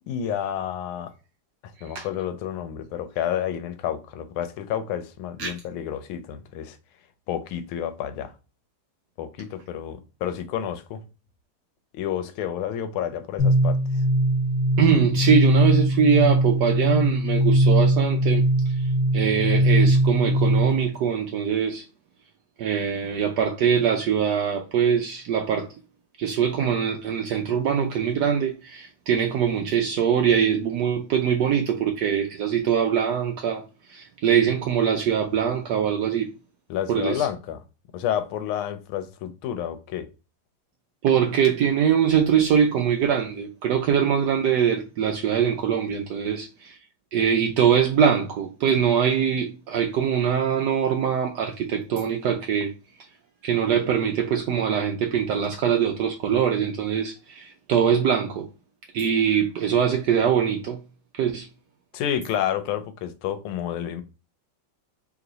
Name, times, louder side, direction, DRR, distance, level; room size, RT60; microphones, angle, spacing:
voice 1, 0.1-1.1 1.8-6.8 7.3-8.3 9.2-11.0 11.9-13.8 36.7-37.6 37.9-40.1 61.9-64.0, left 10 dB, 90° left, 1.5 m, -30 dB
sound 1, 13.4-20.9, right 1 dB, 5° right, 0.3 m, -20 dB
voice 2, 14.8-18.4 19.1-21.8 22.6-25.7 26.2-33.6 33.9-36.3 36.9-37.2 41.0-46.5 47.1-52.7 53.4-57.4 57.7-58.5 58.9-60.8 61.2-61.4, right 8 dB, 75° right, 0.9 m, -22 dB
3.2 x 3.0 x 3.8 m
omnidirectional pair, 2.2 m